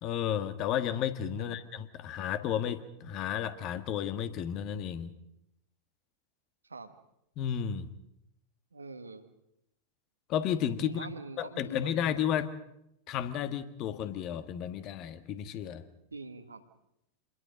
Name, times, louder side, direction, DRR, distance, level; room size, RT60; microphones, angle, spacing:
voice 1, 0.0-5.1 7.4-7.9 10.3-11.1 11.4-12.5 13.1-15.8, left 9 dB, 40° left, 10 dB, 1.7 m, -32 dB
voice 2, 8.7-9.3 10.8-11.9 16.1-16.6, right 4 dB, 75° right, 9 dB, 1.7 m, -45 dB
27.5 x 21.5 x 5.3 m, 0.82 s
figure-of-eight pair, 90°, 0 cm